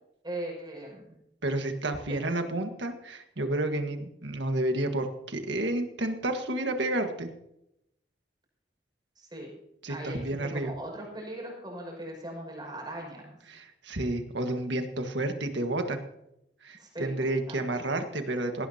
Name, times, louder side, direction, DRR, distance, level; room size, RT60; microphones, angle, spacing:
voice 1, 0.2-1.2 2.1-2.2 9.2-9.5 9.9-13.4 16.8-17.9, right 1 dB, 25° right, -2 dB, 5.9 m, -40 dB
voice 2, 1.4-7.3 9.8-10.7 13.5-16.0 16.6-18.7, right 1 dB, 85° right, 5 dB, 1.6 m, -30 dB
18.0 x 17.5 x 2.9 m, 0.83 s
head